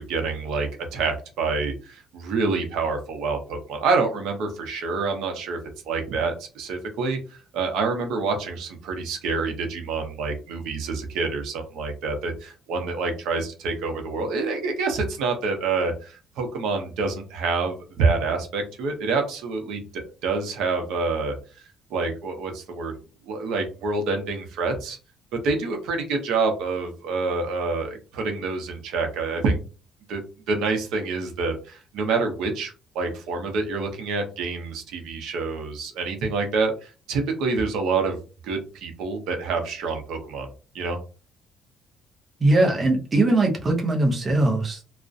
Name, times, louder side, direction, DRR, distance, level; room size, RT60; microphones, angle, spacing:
voice 1, 0.0-5.6 5.9-21.7 21.9-22.9 23.3-25.0 25.3-29.6 30.1-30.2 30.5-38.2 38.4-40.5 40.7-41.0, right 4 dB, 80° right, 4 dB, 0.6 m, -27 dB
voice 2, 42.4-44.8, right 2 dB, 20° right, 1 dB, 0.5 m, -20 dB
2.4 x 2.0 x 2.5 m, 0.34 s
cardioid pair, 155°, 0 cm